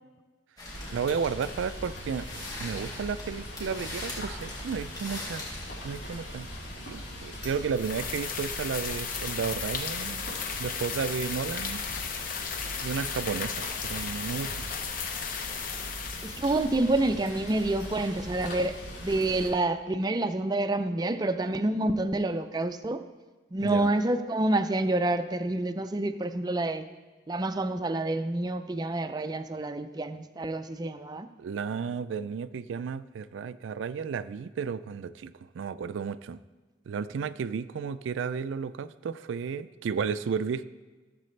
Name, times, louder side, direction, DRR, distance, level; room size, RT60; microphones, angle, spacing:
Rain, 0.6-19.5, equal, 75° left, 3.3 m, -41 dB
sound 1, 0.6-5.9, left 2 dB, 20° left, 3.2 m, -42 dB
voice 1, 0.9-2.3 2.6-5.5 5.8-6.5 6.9-10.2 10.6-11.8 12.8-14.7 23.6-23.9 31.4-36.4 36.9-40.6, right 6 dB, 85° right, 14 dB, 0.4 m, -33 dB
sound 2, 7.7-16.8, left 6 dB, 45° left, 0.8 m, -35 dB
voice 2, 16.2-23.0 23.5-26.9 27.3-31.3, right 2 dB, 20° right, 9 dB, 0.4 m, -28 dB
15.0 x 7.4 x 3.2 m, 1.3 s
head